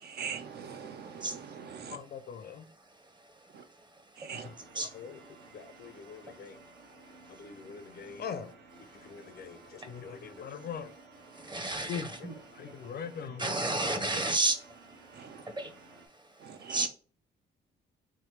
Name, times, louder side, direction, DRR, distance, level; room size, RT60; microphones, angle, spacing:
voice 1, 0.0-2.0 3.5-3.6 4.2-4.5 15.1-15.4 16.4-16.9, right 6 dB, 55° right, 8 dB, 0.5 m, -42 dB
voice 2, 1.9-2.6 4.3-5.2 5.5-6.6 7.3-8.5 9.0-11.0 11.9-12.1 12.5-13.6 13.9-14.1, left 7 dB, 55° left, 11 dB, 0.5 m, -42 dB
sound 1, 4.3-16.1, right 3 dB, 70° right, 1.1 m, -55 dB
voice 3, 11.5-12.3 13.4-14.6 15.6-15.7 16.7-16.9, right 2 dB, 20° right, 7 dB, 0.9 m, -30 dB
3.5 x 3.2 x 3.2 m, 0.38 s
cardioid pair, 90°, 20 cm